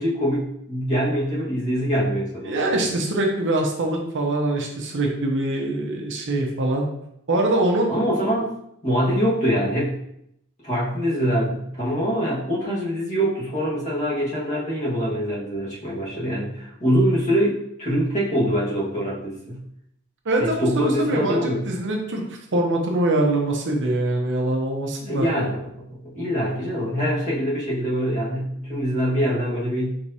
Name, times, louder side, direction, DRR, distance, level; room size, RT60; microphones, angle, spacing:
voice 1, 0.0-2.8 7.9-8.5 8.8-9.9 10.6-19.6 20.4-21.7 25.1-30.0, equal, 35° left, -6 dB, 1.6 m, -24 dB
voice 2, 2.4-6.8 7.3-7.9 20.2-25.3, right 2 dB, 55° right, 1 dB, 0.8 m, -23 dB
4.7 x 3.9 x 2.7 m, 0.76 s
head